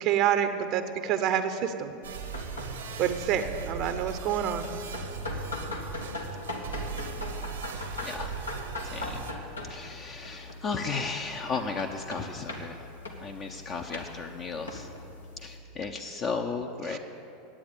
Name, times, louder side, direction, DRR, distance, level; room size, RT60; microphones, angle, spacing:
voice 1, 0.0-1.9 3.0-4.7 16.9-17.0, right 9 dB, 50° right, 10 dB, 0.7 m, -27 dB
sound 1, 2.0-9.3, right 6 dB, 70° right, 1.0 m, -38 dB
sound 2, 2.2-15.6, left 2 dB, 85° left, 1.3 m, -40 dB
voice 2, 8.0-8.3 8.8-9.3 9.7-12.8 13.2-14.9 15.4-17.0, left 4 dB, 35° left, 3 dB, 0.7 m, -34 dB
9.9 x 8.6 x 8.3 m, 2.8 s
figure-of-eight pair, 85°, 0 cm